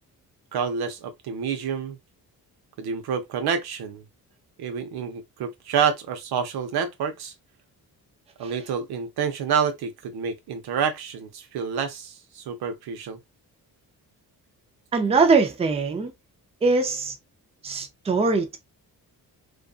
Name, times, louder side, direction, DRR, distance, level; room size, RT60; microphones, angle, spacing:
voice 1, 0.5-2.0 2.8-4.0 4.6-7.3 8.4-13.2, right 7 dB, 90° right, 0.7 m, -28 dB
voice 2, 14.9-16.1 16.6-17.2 17.6-18.6, right 4 dB, 15° right, 0.4 m, -22 dB
2.5 x 2.4 x 2.3 m
cardioid pair, 135°, 37 cm